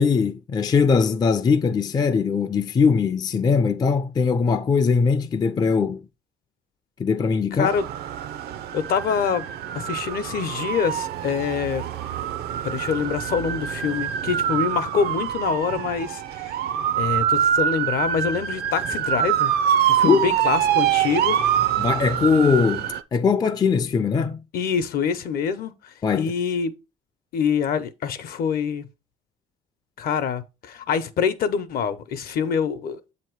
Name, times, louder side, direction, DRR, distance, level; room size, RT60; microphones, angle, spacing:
voice 1, 0.0-6.1 7.0-7.7 20.0-20.3 21.8-24.4 26.0-26.3, left 5 dB, 25° left, 0.4 m, -21 dB
voice 2, 7.5-7.8 8.7-9.5 9.7-11.9 12.6-16.6 16.9-19.5 19.9-21.4 24.5-26.7 27.3-28.9 30.0-33.0, left 7 dB, 60° left, 0.7 m, -25 dB
sound 1, 7.6-23.0, right 10 dB, 70° right, 0.5 m, -25 dB
7.7 x 2.9 x 4.5 m
cardioid pair, 110°, 17 cm